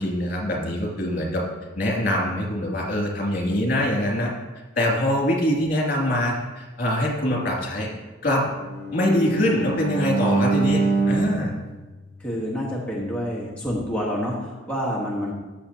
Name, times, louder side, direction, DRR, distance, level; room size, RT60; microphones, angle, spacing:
voice 1, 0.0-1.4 1.8-4.3 4.8-7.9 8.2-8.5 8.9-11.5, left 1 dB, 50° left, -2 dB, 2.5 m, -23 dB
Bowed string instrument, 8.5-12.7, right 3 dB, 70° right, 2.5 m, -26 dB
voice 2, 12.2-15.3, equal, 5° left, -5 dB, 1.3 m, -28 dB
14.5 x 6.6 x 2.9 m, 1.2 s
head